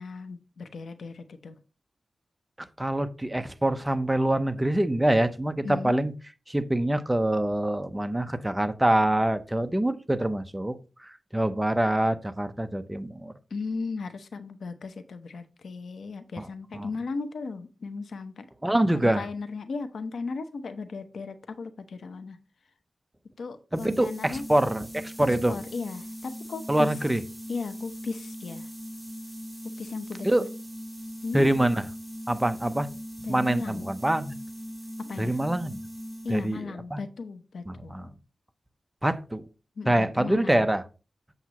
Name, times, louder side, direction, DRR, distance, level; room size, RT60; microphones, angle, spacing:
voice 1, 0.0-1.6 5.6-6.0 13.5-18.4 18.9-22.4 23.4-24.4 25.5-26.9 27.5-28.7 29.8-30.5 31.2-31.4 33.2-33.9 35.0-35.4 36.2-37.9 39.8-40.7, left 4 dB, 90° left, 10 dB, 0.8 m, -36 dB
voice 2, 2.8-6.1 6.5-13.3 16.4-16.5 16.7-16.9 18.6-19.3 23.7-25.6 26.7-27.2 30.2-30.4 31.3-31.8 32.3-32.9 33.3-34.4 35.2-35.8 36.3-37.0 37.7-38.1 39.0-39.4 39.9-40.8, right 1 dB, 15° right, 10 dB, 0.8 m, -25 dB
sound 1, 23.7-36.6, equal, 5° left, 1.9 m, -40 dB
7.9 x 7.2 x 3.0 m, 0.33 s
wide cardioid pair, 75°, 0 cm